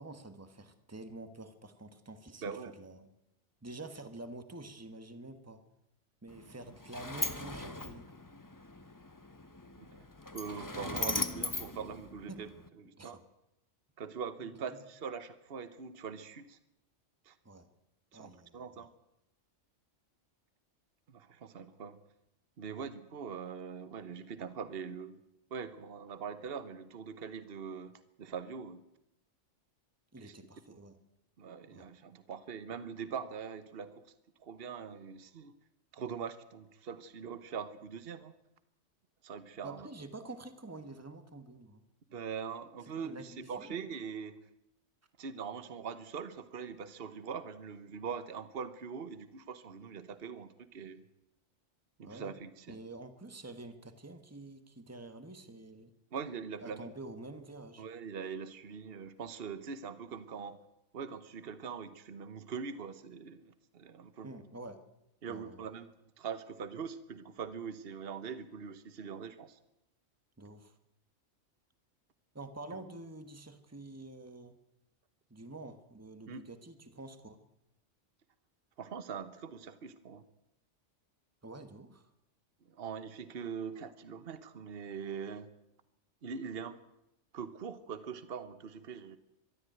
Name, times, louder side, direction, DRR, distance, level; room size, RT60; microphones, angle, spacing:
voice 1, 0.0-3.1 3.6-5.6 6.2-8.1 12.3-12.5 13.0-13.2 14.4-14.8 17.4-17.7 18.1-18.9 30.1-31.0 31.7-31.8 39.6-41.8 43.0-43.8 52.0-52.3 52.7-55.9 56.6-57.8 64.2-64.8 65.3-65.7 70.4-70.7 72.3-74.5 75.3-77.4 81.4-82.1, right 2 dB, 10° right, 9 dB, 1.5 m, -48 dB
voice 2, 2.4-2.7 9.8-10.1 10.3-12.5 12.8-13.2 14.0-16.6 17.2-17.3 18.1-18.9 21.1-22.0 22.6-25.2 25.5-28.8 30.2-30.3 30.7-30.8 31.4-34.0 34.4-35.5 35.9-38.3 39.2-39.9 42.1-44.4 45.2-51.0 52.0-52.8 56.1-56.9 57.8-60.6 60.9-64.3 65.2-65.9 66.2-69.6 72.7-72.8 76.3-76.4 78.8-80.2 82.7-85.5 86.2-86.8 87.3-89.2, right 6 dB, 55° right, 13 dB, 1.3 m, -42 dB
Sliding door, 6.3-12.7, left 2 dB, 15° left, 1.0 m, -39 dB
23.0 x 13.5 x 9.2 m, 0.87 s
omnidirectional pair, 1.3 m